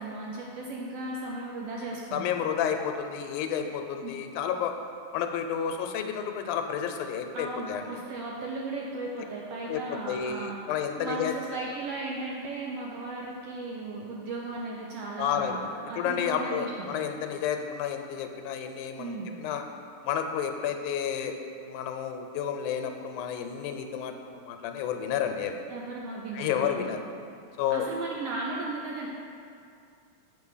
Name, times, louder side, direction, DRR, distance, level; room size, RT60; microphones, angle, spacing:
voice 1, 0.0-2.4 4.0-4.1 7.3-10.6 11.0-16.9 19.0-19.3 25.7-26.9 27.7-29.1, right 2 dB, 75° right, -2 dB, 1.5 m, -36 dB
voice 2, 2.1-4.7 5.1-7.9 9.7-11.3 15.2-19.6 20.0-25.6 26.3-27.0 27.6-27.9, left 8 dB, 90° left, 6 dB, 2.1 m, -31 dB
7.7 x 4.8 x 5.5 m, 2.4 s
omnidirectional pair, 3.4 m